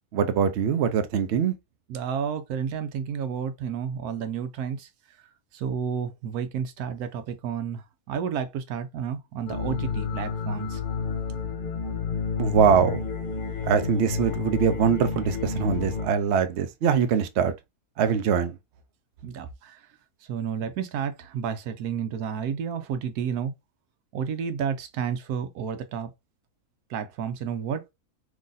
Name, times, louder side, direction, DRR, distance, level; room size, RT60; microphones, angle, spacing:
voice 1, 0.1-1.5 12.4-13.0 13.7-17.5 18.0-18.6, right 7 dB, 60° right, 0.7 m, -23 dB
voice 2, 1.9-4.9 5.5-10.8 19.2-19.8 20.3-23.5 24.1-26.1 26.9-27.9, right 7 dB, 80° right, 1.1 m, -31 dB
sound 1, 9.5-16.1, left 5 dB, 45° left, 0.8 m, -30 dB
3.8 x 3.0 x 2.6 m
omnidirectional pair, 1.6 m